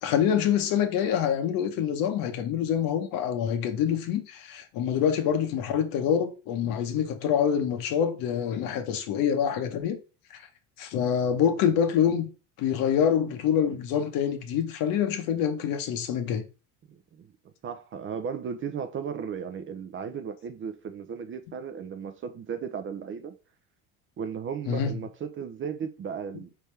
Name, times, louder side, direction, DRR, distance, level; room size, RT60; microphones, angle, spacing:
voice 1, 0.0-10.0 10.8-12.3 12.6-16.4 24.7-25.0, left 8 dB, 60° left, 1.0 m, -26 dB
voice 2, 16.9-17.3 17.6-23.3 24.2-26.5, right 7 dB, 30° right, 0.5 m, -35 dB
4.3 x 3.4 x 3.3 m
supercardioid pair, 95°, 39 cm